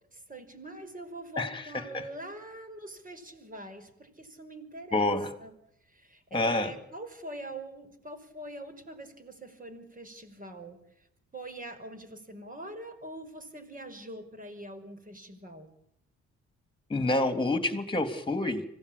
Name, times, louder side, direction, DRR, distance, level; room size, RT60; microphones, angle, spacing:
voice 1, 0.1-5.1 5.4-5.5 5.8-11.1 11.3-15.7, right 1 dB, 25° right, 8 dB, 5.5 m, -44 dB
voice 2, 1.4-2.1 4.9-5.3 6.3-6.7 16.9-18.6, left 2 dB, 15° left, 9 dB, 3.4 m, -28 dB
25.0 x 17.5 x 8.7 m, 0.77 s
cardioid pair, 90°, 30 cm